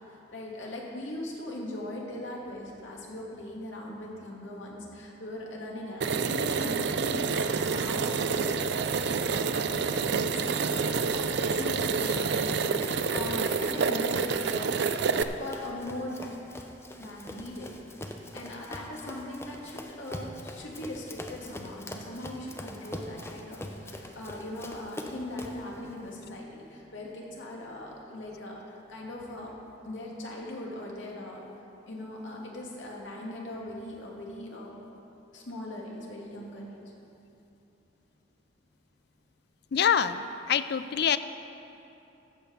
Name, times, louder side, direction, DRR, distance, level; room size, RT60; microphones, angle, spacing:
voice 1, 0.1-14.7 15.4-16.5 17.0-17.7 18.3-29.5 29.8-31.4 31.9-34.8 35.3-36.8, left 1 dB, 80° left, -2 dB, 2.2 m, -40 dB
sound 1, 6.0-15.2, right 5 dB, 60° right, 0.5 m, -28 dB
Run, 10.7-25.7, left 1 dB, 15° left, 0.7 m, -43 dB
voice 2, 39.7-41.2, left 8 dB, 60° left, 13 dB, 0.4 m, -25 dB
15.0 x 5.8 x 7.0 m, 2.8 s
head